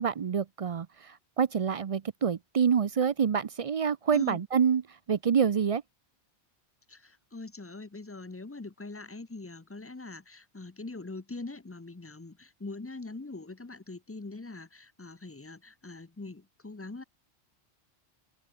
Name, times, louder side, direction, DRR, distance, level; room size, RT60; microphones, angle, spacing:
voice 1, 0.0-5.8, right 7 dB, 50° right, 0.4 m, -27 dB
voice 2, 6.9-17.0, left 3 dB, 15° left, 0.5 m, -43 dB
open air
omnidirectional pair, 1.2 m